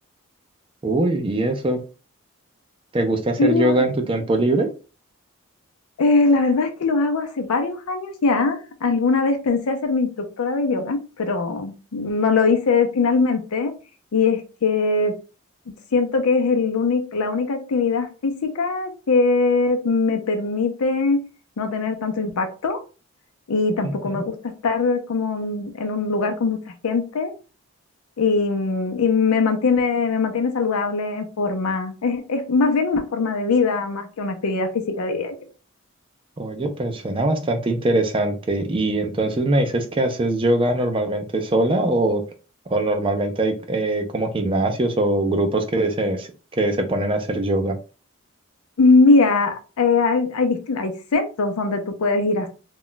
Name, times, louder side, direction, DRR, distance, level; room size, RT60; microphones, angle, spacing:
voice 1, 0.8-1.8 2.9-4.7 23.8-24.2 36.4-42.2 42.7-46.3 46.6-47.8, right 2 dB, 25° right, 5 dB, 0.4 m, -22 dB
voice 2, 3.4-3.8 6.0-10.1 10.4-13.7 14.1-15.1 15.9-21.2 21.6-22.8 23.5-27.3 28.2-34.7 35.0-35.4 48.8-52.5, left 4 dB, 90° left, 6 dB, 0.5 m, -21 dB
2.3 x 2.1 x 3.7 m, 0.34 s
head